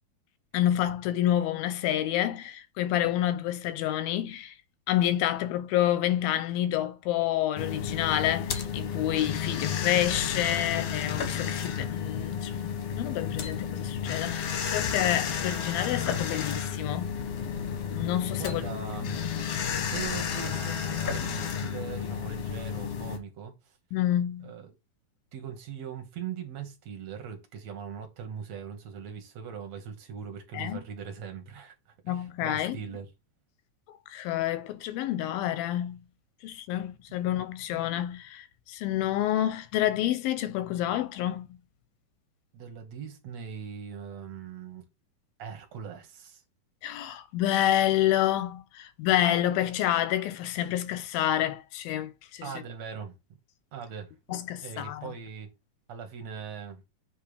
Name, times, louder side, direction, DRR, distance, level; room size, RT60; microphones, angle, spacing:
voice 1, 0.5-4.6 4.9-17.2 17.9-18.6 23.9-24.5 30.5-30.8 32.1-32.8 34.1-36.0 36.4-41.6 46.8-52.5 54.3-55.1, left 12 dB, 85° left, 2.4 m, -28 dB
sound 1, 7.6-23.2, left 7 dB, 65° left, 1.7 m, -32 dB
voice 2, 18.3-19.2 19.8-23.5 24.4-24.7 25.3-31.7 32.1-33.1 37.1-37.2 37.7-37.8 42.5-44.9 45.4-46.4 52.4-53.1 53.7-55.5 55.9-56.8, right 7 dB, 55° right, 2.3 m, -40 dB
7.8 x 3.6 x 5.0 m
omnidirectional pair, 4.4 m